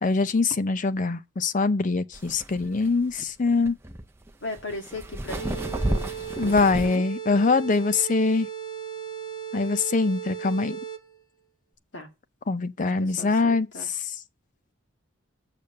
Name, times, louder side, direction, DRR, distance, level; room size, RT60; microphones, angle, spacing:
voice 1, 0.0-3.8 6.4-8.5 9.5-10.8 12.5-13.7, left 3 dB, 40° left, 0.5 m, -23 dB
sound 1, 2.1-7.0, right 1 dB, 10° right, 0.6 m, -32 dB
voice 2, 4.4-6.0 6.4-7.0 11.9-12.1 12.8-13.9, left 2 dB, 60° left, 2.2 m, -38 dB
sound 2, 5.3-11.2, right 8 dB, 20° left, 0.9 m, -36 dB
6.8 x 6.6 x 6.7 m
head